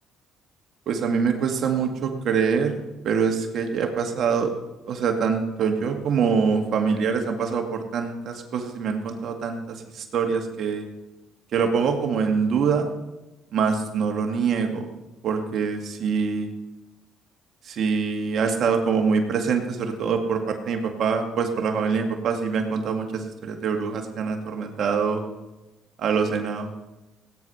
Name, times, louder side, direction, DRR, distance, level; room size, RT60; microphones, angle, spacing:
voice 1, 0.9-4.5 4.9-10.9 11.5-12.9 13.5-14.9 15.2-16.5 17.6-25.2 26.0-26.7, right 5 dB, 55° right, 4 dB, 2.0 m, -24 dB
17.0 x 9.5 x 5.7 m, 1.1 s
supercardioid pair, 85°, 0 cm